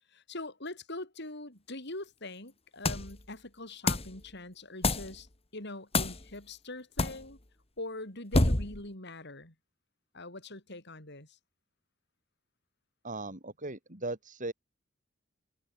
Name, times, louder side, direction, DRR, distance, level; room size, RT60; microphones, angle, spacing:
voice 1, 0.1-5.3 5.5-7.4 7.8-9.5 10.1-11.4, left 2 dB, 60° left, 8.0 m, -43 dB
sound 1, 2.9-3.2 3.9-4.2 4.8-5.2 5.9-6.2 7.0-7.2 8.3-8.8, left 2 dB, 30° left, 2.1 m, -27 dB
voice 2, 13.0-14.5, right 2 dB, 40° right, 6.5 m, -38 dB
head